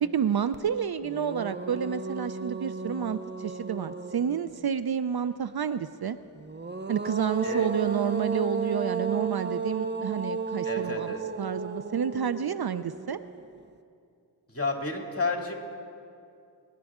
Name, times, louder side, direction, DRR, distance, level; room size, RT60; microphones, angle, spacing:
voice 1, 0.0-6.2 6.9-13.2, right 7 dB, 55° right, 13 dB, 0.5 m, -29 dB
sound 1, 0.5-0.6 1.0-4.7 6.4-13.6, right 5 dB, 25° right, 0.8 m, -34 dB
voice 2, 10.6-11.2 14.5-15.6, left 3 dB, 30° left, 1 dB, 2.3 m, -31 dB
25.0 x 11.0 x 3.6 m, 2.5 s
cardioid pair, 45°, 45 cm